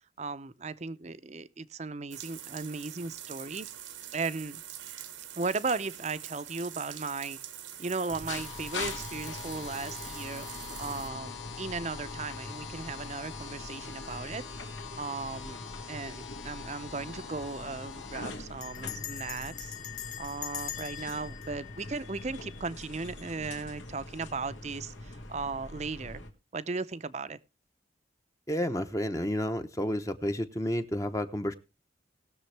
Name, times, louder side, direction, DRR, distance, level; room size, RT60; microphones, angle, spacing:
voice 1, 0.2-3.7 4.1-4.6 5.4-7.4 7.8-10.5 10.8-14.4 15.0-15.6 15.9-19.7 20.2-26.2 26.5-27.4, right 4 dB, 35° right, 0.6 m, -36 dB
sound 1, 2.1-11.1, right 11 dB, 85° right, 1.2 m, -44 dB
sound 2, 8.1-26.3, left 3 dB, 90° left, 2.3 m, -42 dB
Bell, 16.5-16.8 17.1-17.2 17.4-17.8 18.6-22.7, left 11 dB, 40° left, 1.2 m, -42 dB
voice 2, 28.5-31.5, equal, 15° left, 0.8 m, -31 dB
19.5 x 6.9 x 3.3 m
head